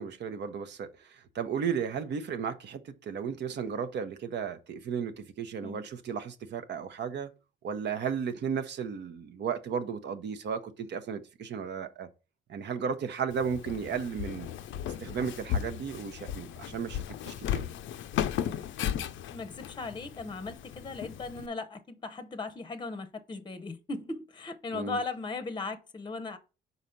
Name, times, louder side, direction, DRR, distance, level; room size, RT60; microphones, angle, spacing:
voice 1, 0.0-7.3 7.6-12.1 12.5-14.5 15.0-17.6 24.7-25.0, right 7 dB, 60° right, 0.8 m, -34 dB
Walk footsteps, 13.3-21.5, left 10 dB, 80° left, 0.5 m, -35 dB
voice 2, 19.3-26.4, left 3 dB, 25° left, 0.7 m, -38 dB
4.9 x 4.0 x 5.7 m
cardioid pair, 90°, 20 cm